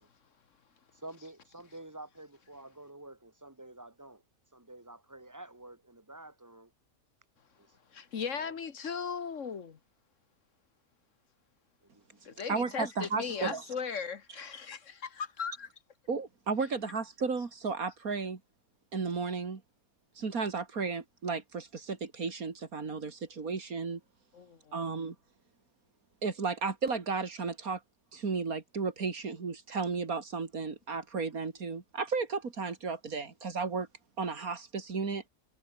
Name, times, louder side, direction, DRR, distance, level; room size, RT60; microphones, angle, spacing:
voice 1, 1.0-4.2 4.5-6.7 7.6-7.7 8.3-8.5 11.9-12.0 12.3-12.5, right 2 dB, 10° right, 2.3 m, -49 dB
voice 2, 7.9-9.8 12.2-15.7 24.3-24.8, left 6 dB, 60° left, 1.7 m, -37 dB
voice 3, 12.5-13.6 16.1-18.4 18.9-19.6 20.2-24.0 24.7-25.1 26.2-27.8 28.1-33.9 34.2-35.2, right 4 dB, 90° right, 3.0 m, -34 dB
omnidirectional pair, 1.5 m